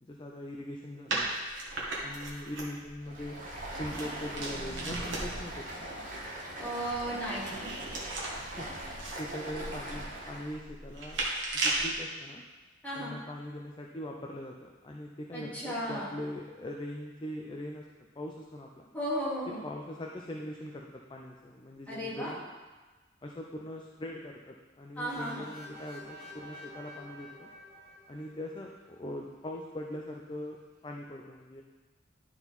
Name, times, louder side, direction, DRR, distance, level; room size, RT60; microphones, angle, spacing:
voice 1, 0.0-1.3 2.0-3.4 3.8-5.9 8.6-8.7 9.2-11.2 11.5-12.4 12.9-17.9 18.2-18.9 19.6-22.4 23.2-27.5 28.1-31.6, left 1 dB, 25° left, 0 dB, 0.5 m, -41 dB
sound 1, 1.1-5.6 7.0-11.9, right 2 dB, 65° right, 1.5 m, -36 dB
Stream, 3.0-10.6, right 1 dB, 45° right, 1.5 m, -41 dB
voice 2, 6.6-7.7 12.8-13.2 15.3-16.1 18.9-19.6 21.9-22.3 24.9-25.5, equal, 10° left, -9 dB, 2.4 m, -35 dB
sound 2, 25.1-28.9, left 1 dB, 50° left, 2.7 m, -49 dB
11.0 x 4.5 x 4.1 m, 1.3 s
head